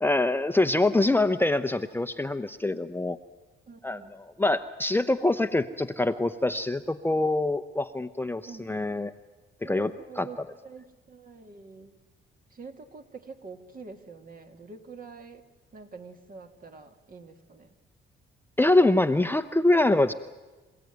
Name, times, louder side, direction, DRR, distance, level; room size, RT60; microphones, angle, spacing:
voice 1, 0.0-3.2 3.8-9.1 9.6-9.9 10.2-10.3 18.6-20.1, left 2 dB, 10° left, 9 dB, 0.8 m, -24 dB
voice 2, 3.7-4.1 8.5-8.9 9.6-12.0 12.5-15.4 15.7-17.8, right 4 dB, 45° right, 5 dB, 2.4 m, -46 dB
27.5 x 16.0 x 9.4 m, 1.2 s
cardioid pair, 90°, 20 cm